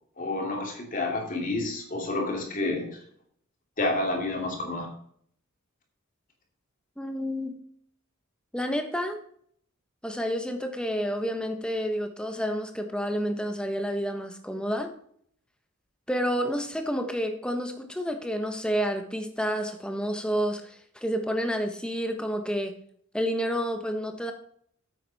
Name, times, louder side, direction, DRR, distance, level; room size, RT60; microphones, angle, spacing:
voice 1, 0.2-3.0 3.8-4.9, left 2 dB, 40° left, 1 dB, 2.7 m, -29 dB
voice 2, 7.0-7.5 8.5-9.2 10.0-14.9 16.1-22.8 23.1-24.3, equal, 5° left, 5 dB, 1.2 m, -29 dB
9.6 x 8.3 x 4.1 m, 0.62 s
head